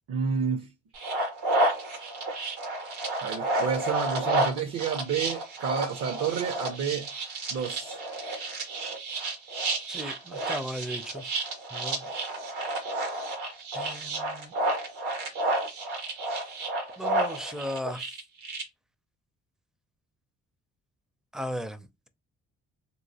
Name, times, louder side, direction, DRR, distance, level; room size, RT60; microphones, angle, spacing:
voice 1, 0.1-0.7 3.2-7.1 7.5-8.0, right 6 dB, 55° right, 0.6 m, -30 dB
sound 1, 0.9-18.6, right 2 dB, 90° right, 1.3 m, -31 dB
voice 2, 9.9-11.2 11.7-12.1 13.7-14.5 17.0-18.1 21.3-22.1, equal, ahead, 0.4 m, -36 dB
3.1 x 2.9 x 2.7 m
cardioid pair, 90°, 30 cm